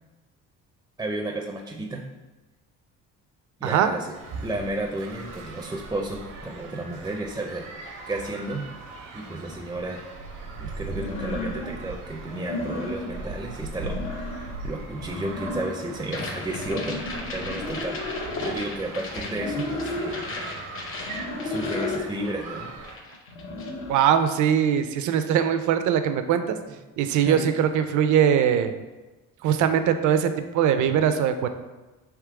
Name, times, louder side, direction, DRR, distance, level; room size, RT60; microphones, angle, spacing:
voice 1, 1.0-2.0 3.6-4.1 4.4-7.7 8.1-8.7 9.1-10.0 10.6-17.0 17.3-18.0 18.4-20.2 21.4-22.7 27.3-27.5, right 2 dB, 10° right, 1 dB, 0.4 m, -32 dB
voice 2, 3.6-3.9 23.9-26.6 27.0-28.7 29.4-31.5, right 9 dB, 65° right, 9 dB, 0.5 m, -21 dB
sound 1, 4.1-23.0, right 3 dB, 85° right, 0.9 m, -40 dB
sound 2, 9.5-9.6 10.9-11.8 12.2-13.3 13.6-14.6 14.9-15.9 16.5-18.6 19.3-20.2 21.0-22.1 23.3-24.0, left 2 dB, 80° left, 0.8 m, -33 dB
sound 3, 16.0-22.6 22.8-23.8, left 3 dB, 40° left, 0.7 m, -38 dB
3.6 x 3.0 x 4.7 m, 1.1 s
cardioid pair, 110°, 32 cm